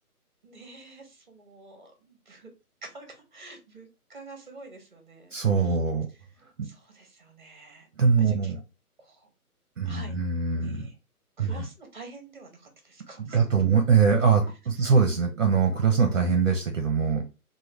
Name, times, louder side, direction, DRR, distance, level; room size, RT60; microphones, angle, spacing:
voice 1, 0.4-2.5 2.8-5.4 5.6-5.7 6.6-7.9 8.3-8.5 9.0-9.3 9.8-10.1 10.6-10.9 11.4-13.7, right 3 dB, 30° right, 4 dB, 0.8 m, -48 dB
voice 2, 5.3-6.1 6.6-6.7 8.0-8.6 9.8-10.8 11.4-11.7 13.2-17.2, right 5 dB, 55° right, 3 dB, 0.6 m, -23 dB
3.1 x 2.2 x 3.2 m, 0.30 s
hypercardioid pair, 175°, 46 cm